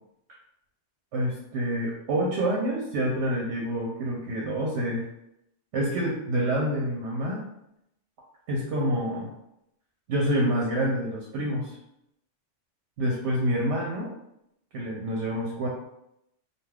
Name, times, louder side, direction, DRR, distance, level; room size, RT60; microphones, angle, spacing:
voice 1, 1.1-5.0 5.7-7.4 8.5-9.3 10.1-11.8 13.0-14.1 14.7-15.7, right 1 dB, 70° right, -2 dB, 0.9 m, -27 dB
2.5 x 2.3 x 3.3 m, 0.81 s
omnidirectional pair, 1.3 m